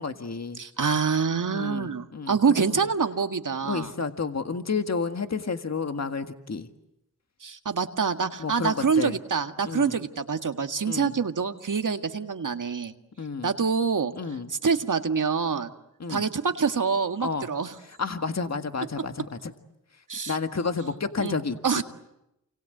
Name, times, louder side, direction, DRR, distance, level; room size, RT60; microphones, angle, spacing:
voice 1, 0.0-0.6 1.5-2.4 2.7-2.9 3.6-6.7 8.4-9.2 9.6-10.0 10.8-11.2 13.2-13.5 14.2-14.5 16.0-16.3 17.2-17.5 17.8-19.5 20.3-21.8, left 4 dB, 45° left, 7 dB, 1.8 m, -31 dB
voice 2, 0.6-3.9 7.4-12.9 13.4-14.1 14.5-15.7 16.1-17.7 20.1-20.4 21.2-21.4 21.6-21.8, right 5 dB, 60° right, 7 dB, 1.9 m, -26 dB
28.5 x 26.0 x 8.0 m, 0.86 s
cardioid pair, 45°, 35 cm